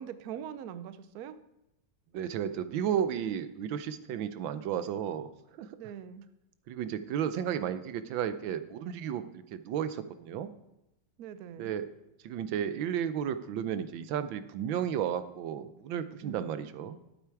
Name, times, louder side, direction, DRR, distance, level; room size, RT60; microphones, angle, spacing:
voice 1, 0.0-1.4 5.8-6.2 11.2-11.7 16.2-16.5, right 9 dB, 65° right, 13 dB, 1.0 m, -42 dB
voice 2, 2.1-5.3 5.6-5.8 6.7-9.2 9.5-10.5 11.6-11.9 12.2-17.0, right 9 dB, 90° right, 13 dB, 1.5 m, -33 dB
11.5 x 8.1 x 4.7 m, 0.90 s
omnidirectional pair, 2.1 m